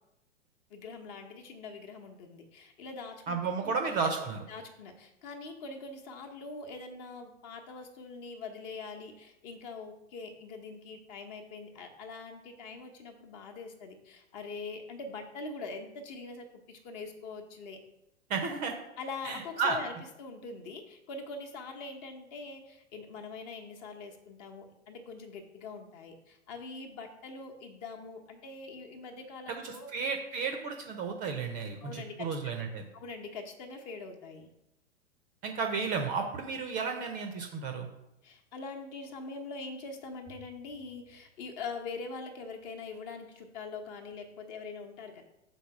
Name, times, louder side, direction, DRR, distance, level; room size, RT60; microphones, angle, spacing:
voice 1, 0.7-3.4 3.6-3.8 4.5-17.8 19.0-29.9 31.8-32.4 32.9-34.5 38.2-45.2, left 4 dB, 35° left, 3 dB, 1.0 m, -43 dB
voice 2, 3.3-4.4 18.3-18.7 19.2-19.8 29.6-32.8 35.4-37.9, right 5 dB, 25° right, 5 dB, 0.6 m, -33 dB
5.8 x 4.0 x 4.8 m, 0.89 s
figure-of-eight pair, 100°, 36 cm